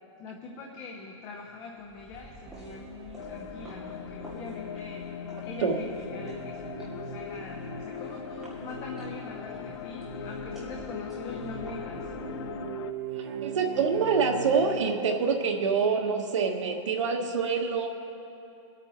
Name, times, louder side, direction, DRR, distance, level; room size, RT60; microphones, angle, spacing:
voice 1, 0.2-5.1 5.4-12.1, left 3 dB, 20° left, 0 dB, 0.8 m, -43 dB
sound 1, 1.8-12.7, right 1 dB, 5° right, 2.5 m, -50 dB
sound 2, 2.4-14.8, right 6 dB, 55° right, 1.0 m, -42 dB
sound 3, 3.2-12.9, left 8 dB, 60° left, 0.4 m, -40 dB
voice 2, 13.1-17.9, right 5 dB, 80° right, 3 dB, 1.4 m, -26 dB
22.5 x 8.9 x 3.1 m, 2.8 s
hypercardioid pair, 165°, 15 cm